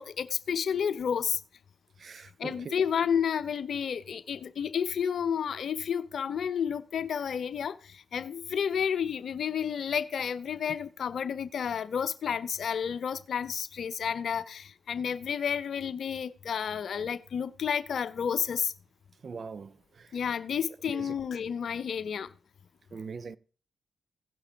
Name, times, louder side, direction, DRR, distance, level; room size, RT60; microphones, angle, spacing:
voice 1, 0.0-1.4 2.4-18.7 20.1-22.3, left 7 dB, 65° left, 0.7 m, -31 dB
voice 2, 2.0-2.7 19.2-20.1 20.9-21.1 22.9-23.4, right 5 dB, 55° right, 0.6 m, -42 dB
17.0 x 5.6 x 3.5 m
hypercardioid pair, 40°, 0 cm